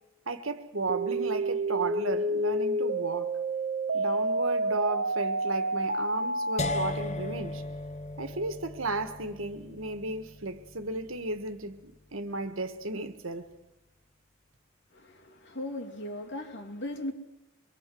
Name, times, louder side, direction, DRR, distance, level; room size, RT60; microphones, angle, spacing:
voice 1, 0.2-3.4 3.9-7.6 8.2-13.5, right 2 dB, 75° right, 1.8 m, -34 dB
sound 1, 0.9-6.9, right 2 dB, 55° right, 1.1 m, -29 dB
sound 2, 6.6-12.5, left 2 dB, 35° left, 1.0 m, -38 dB
voice 2, 14.9-17.1, left 1 dB, 60° left, 2.8 m, -38 dB
25.0 x 22.0 x 7.9 m
head